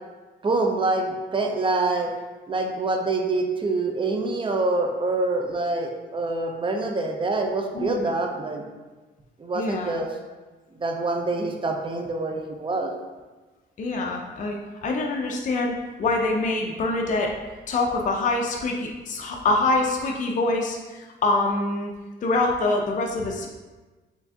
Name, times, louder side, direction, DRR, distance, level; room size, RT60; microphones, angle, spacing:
voice 1, 0.4-2.1 2.5-8.6 9.4-10.1 10.8-12.9, right 2 dB, 25° right, 2 dB, 0.6 m, -25 dB
voice 2, 7.7-8.1 9.5-10.0 13.8-17.3 17.7-21.9 22.2-23.5, left 2 dB, 40° left, 0 dB, 0.5 m, -25 dB
4.5 x 3.3 x 2.8 m, 1.2 s
cardioid pair, 90°, 20 cm